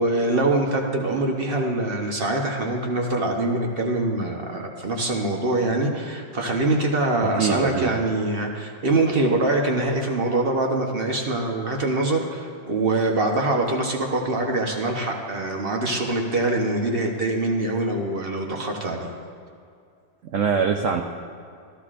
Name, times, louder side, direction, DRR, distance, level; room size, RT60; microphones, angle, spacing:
voice 1, 0.0-19.1, right 2 dB, 45° right, 1 dB, 0.8 m, -24 dB
voice 2, 7.2-7.9 20.3-21.0, right 6 dB, 80° right, 3 dB, 0.7 m, -23 dB
14.0 x 12.5 x 2.5 m, 2.3 s
omnidirectional pair, 2.1 m